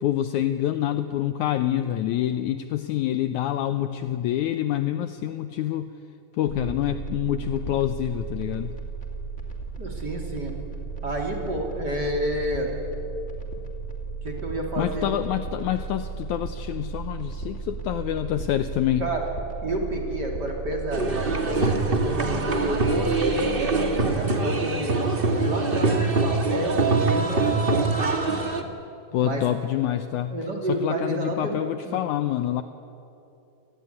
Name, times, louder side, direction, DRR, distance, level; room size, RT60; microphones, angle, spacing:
voice 1, 0.0-5.9 6.4-8.8 14.8-19.1 29.1-30.4 30.7-32.6, left 12 dB, 75° left, 9 dB, 1.9 m, -26 dB
sound 1, 6.5-24.2, right 4 dB, 20° left, 3.0 m, -35 dB
voice 2, 6.5-6.9 9.8-10.5 11.0-12.8 14.2-15.1 19.0-19.2 19.6-25.0 25.4-28.0 29.2-29.5 30.3-31.6 31.8-32.0, right 1 dB, 30° right, 1 dB, 3.6 m, -30 dB
sound 2, 20.9-28.6, right 3 dB, 55° right, 0.6 m, -24 dB
28.0 x 19.0 x 9.7 m, 2.8 s
omnidirectional pair, 4.0 m